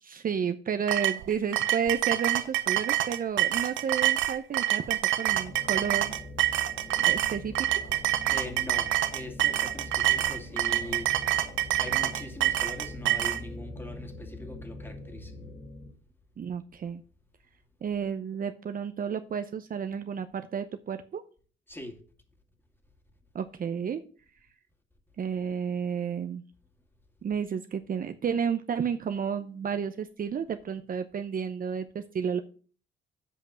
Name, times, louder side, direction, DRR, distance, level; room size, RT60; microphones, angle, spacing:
voice 1, 0.0-6.2 7.0-7.5 16.4-17.0 17.8-21.2 23.3-24.0 25.2-26.4 27.2-32.4, right 7 dB, 45° right, 0.7 m, -31 dB
sound 1, 0.9-13.4, right 13 dB, 75° right, 0.8 m, -26 dB
sound 2, 5.3-15.9, left 2 dB, 40° left, 2.2 m, -43 dB
voice 2, 8.3-11.2 11.8-15.4 21.7-22.0, left 1 dB, 10° left, 2.1 m, -42 dB
7.8 x 5.2 x 7.3 m
cardioid pair, 90°, 20 cm